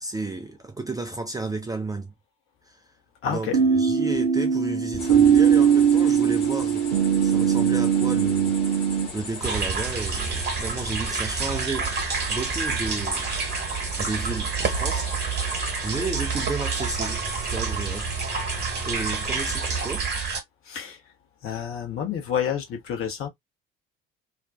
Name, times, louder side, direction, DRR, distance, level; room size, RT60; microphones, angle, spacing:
voice 1, 0.0-2.1 2.7-2.8 3.3-8.8 9.1-11.9 12.3-13.4 14.0-15.1 15.4-17.2 17.5-18.1 18.8-20.1, right 3 dB, 10° right, 0.4 m, -33 dB
voice 2, 3.2-3.6 20.7-21.0 21.4-23.3, left 8 dB, 45° left, 0.9 m, -29 dB
sound 1, 3.5-9.1, right 7 dB, 80° right, 0.5 m, -20 dB
sound 2, 5.0-19.9, left 4 dB, 70° left, 1.1 m, -39 dB
sound 3, 9.4-20.4, right 5 dB, 35° right, 1.1 m, -28 dB
2.5 x 2.2 x 2.3 m
figure-of-eight pair, 50°, 29 cm